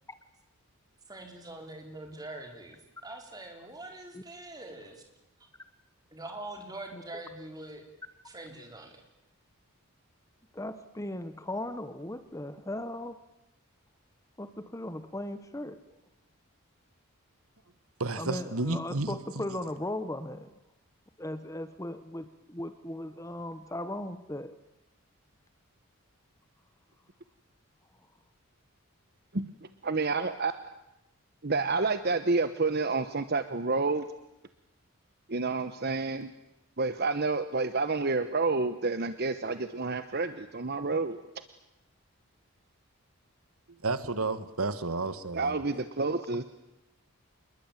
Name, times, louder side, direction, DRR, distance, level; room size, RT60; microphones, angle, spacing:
voice 1, 1.1-5.0 6.1-7.8 8.2-9.0, right 2 dB, 15° right, 3 dB, 4.2 m, -44 dB
voice 2, 10.5-13.2 14.4-15.8 18.2-20.5 21.2-24.5, left 1 dB, 15° left, 11 dB, 1.0 m, -37 dB
voice 3, 18.0-19.6 43.7-45.6, right 3 dB, 75° right, 13 dB, 1.6 m, -32 dB
voice 4, 29.3-30.7 31.4-34.1 35.3-36.3 36.8-41.2 45.3-46.4, right 3 dB, 45° right, 11 dB, 1.0 m, -29 dB
27.0 x 21.5 x 9.1 m, 0.91 s
head